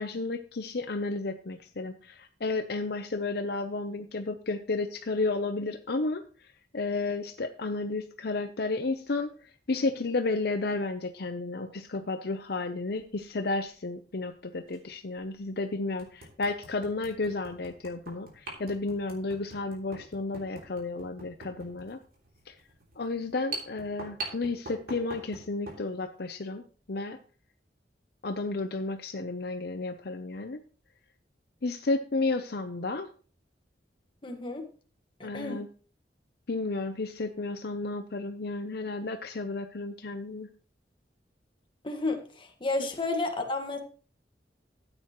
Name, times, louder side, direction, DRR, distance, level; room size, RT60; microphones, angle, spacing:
voice 1, 0.0-6.2 6.7-9.3 9.7-22.0 22.5-22.6 23.0-26.6 26.9-27.2 28.2-30.6 31.6-33.1 35.2-35.7 36.5-40.5 42.8-42.9, left 3 dB, 65° left, 7 dB, 0.7 m, -32 dB
sound 1, 13.0-13.2 14.7-14.8 15.4-15.5 16.0-25.9, right 2 dB, 60° right, 3.2 m, -43 dB
voice 2, 34.2-34.7 35.2-35.6 41.8-43.8, left 2 dB, 30° left, 3 dB, 1.7 m, -32 dB
13.5 x 8.8 x 3.1 m, 0.39 s
head